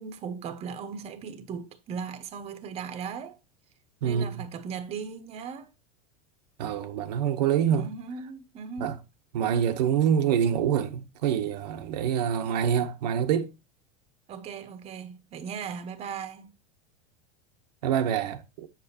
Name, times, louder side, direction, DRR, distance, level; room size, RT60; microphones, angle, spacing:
voice 1, 0.0-3.4 4.0-5.7 7.7-9.0 14.3-16.5, right 6 dB, 30° right, 1.0 m, -38 dB
voice 2, 6.6-7.9 8.8-8.9 9.3-13.5 17.8-18.7, right 8 dB, 85° right, 1.0 m, -26 dB
7.6 x 7.1 x 2.9 m
supercardioid pair, 145°, 21 cm